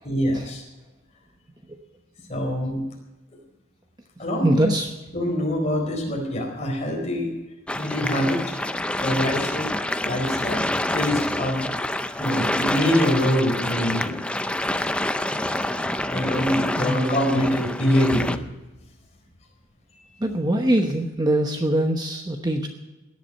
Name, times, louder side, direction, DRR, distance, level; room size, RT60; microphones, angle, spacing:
voice 1, 0.0-0.6 2.3-2.8 4.2-4.7 5.1-7.3 7.8-8.6 9.0-11.7 12.2-14.2 16.1-18.4, equal, 30° left, 0 dB, 4.3 m, -24 dB
voice 2, 4.4-4.9 16.8-17.4 20.2-22.7, right 1 dB, 20° right, 4 dB, 1.0 m, -23 dB
sound 1, 7.7-18.4, left 1 dB, 5° left, 0.5 m, -27 dB
17.5 x 11.0 x 5.5 m, 1.1 s
head